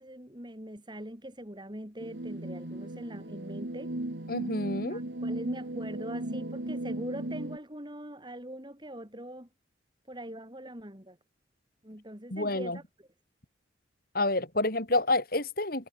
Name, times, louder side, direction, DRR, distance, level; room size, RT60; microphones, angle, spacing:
voice 1, 0.0-3.9 4.9-9.5 10.1-11.2 11.8-13.1, right 1 dB, 25° right, 7.3 m, -42 dB
sound 1, 2.0-7.6, right 1 dB, 80° right, 1.9 m, -36 dB
voice 2, 4.3-5.0 12.3-12.8 14.1-15.9, left 2 dB, 55° left, 6.2 m, -28 dB
head